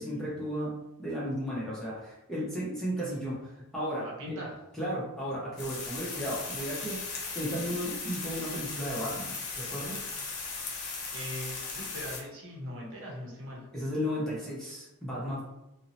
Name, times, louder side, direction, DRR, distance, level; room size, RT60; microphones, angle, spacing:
voice 1, 0.0-4.4 4.8-7.0 7.3-10.0 13.7-15.4, equal, ahead, -7 dB, 0.6 m, -34 dB
voice 2, 3.9-4.5 11.1-13.7, equal, 60° right, -2 dB, 0.8 m, -41 dB
sound 1, 5.6-12.2, left 4 dB, 65° left, 0.6 m, -37 dB
2.7 x 2.0 x 2.7 m, 0.94 s
head